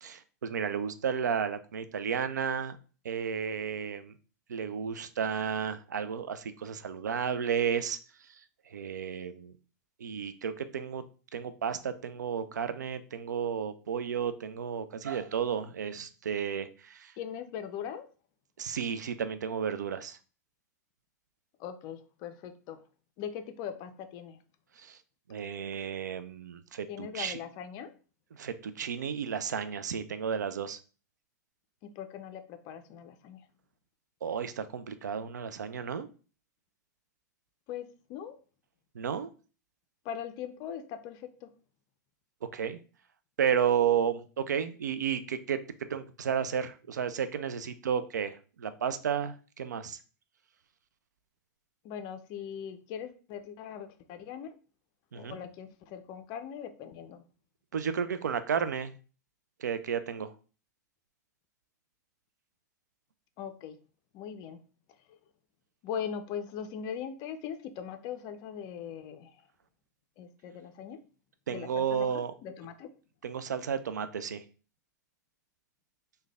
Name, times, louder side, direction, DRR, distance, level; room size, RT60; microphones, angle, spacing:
voice 1, 0.0-2.8 3.0-4.1 4.5-8.0 8.7-9.5 10.0-11.0 11.3-17.1 18.6-20.2 24.8-25.0 25.3-27.4 28.3-30.8 34.2-36.1 38.9-39.3 42.5-42.8 43.4-45.6 45.9-50.0 55.1-55.4 57.7-58.9 59.6-60.3 71.5-72.3 73.2-74.4, right 7 dB, 80° right, 11 dB, 0.4 m, -32 dB
voice 2, 17.2-18.1 21.6-22.8 23.2-24.4 26.9-27.9 31.8-33.5 37.7-38.4 40.0-41.5 51.8-54.6 55.1-57.2 63.4-63.8 64.1-64.6 65.1-65.2 65.8-69.4 70.2-71.0 71.5-72.1 72.4-72.9, left 8 dB, 45° left, 9 dB, 0.4 m, -40 dB
3.2 x 2.2 x 3.4 m, 0.37 s
hypercardioid pair, 95°, 9 cm